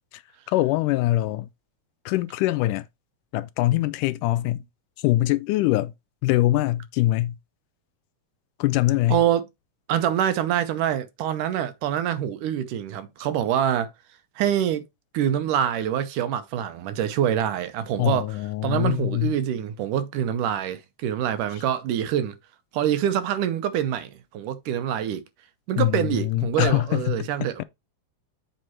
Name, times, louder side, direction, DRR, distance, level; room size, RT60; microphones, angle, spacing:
voice 1, 0.5-1.5 2.1-2.9 3.3-4.6 5.0-5.9 6.2-7.4 8.6-9.2 18.0-19.3 25.8-27.3, left 16 dB, 80° left, 2.0 m, -23 dB
voice 2, 9.1-9.4 9.9-13.9 14.4-14.8 15.1-18.3 18.6-22.4 22.7-25.2 25.7-27.6, right 10 dB, 75° right, 2.4 m, -25 dB
7.9 x 4.1 x 4.3 m
omnidirectional pair, 3.8 m